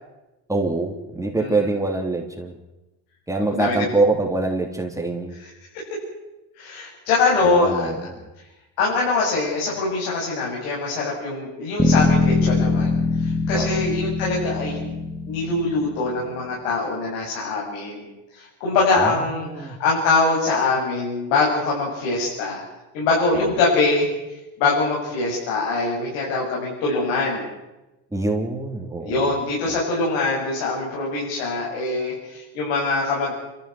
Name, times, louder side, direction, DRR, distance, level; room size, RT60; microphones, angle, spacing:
voice 1, 0.5-2.5 3.3-5.3 7.4-8.3 13.5-13.8 19.0-19.7 23.3-23.5 28.1-29.3 29.6-29.8, right 2 dB, 5° right, 1 dB, 3.3 m, -25 dB
voice 2, 1.4-1.7 3.4-3.8 6.6-7.9 8.8-14.9 15.2-18.1 18.3-22.6 22.9-24.1 24.6-27.5 29.0-33.3, left 3 dB, 85° left, -4 dB, 7.7 m, -23 dB
Bass guitar, 11.8-16.2, left 4 dB, 10° left, 1.4 m, -22 dB
29.0 x 14.0 x 8.0 m, 1.0 s
supercardioid pair, 115°, 43 cm